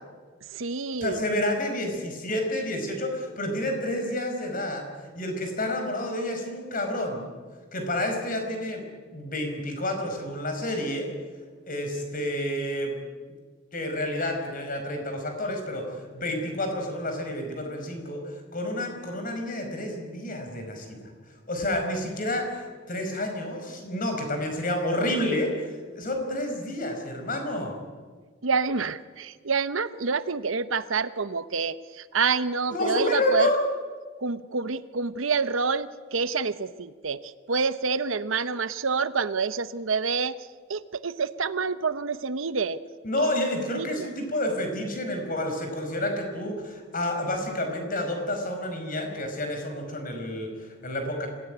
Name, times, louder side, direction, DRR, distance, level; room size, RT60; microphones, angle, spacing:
voice 1, 0.5-1.2 28.4-33.5 34.2-40.4 40.7-42.8 43.7-44.1, right 5 dB, 80° right, 14 dB, 0.9 m, -27 dB
voice 2, 1.0-4.9 5.1-7.3 7.7-8.8 9.1-11.1 11.7-13.0 13.7-21.1 21.5-27.8 32.7-33.6 43.0-51.3, left 1 dB, 45° left, 4 dB, 5.1 m, -29 dB
26.0 x 17.0 x 10.0 m, 1.5 s
head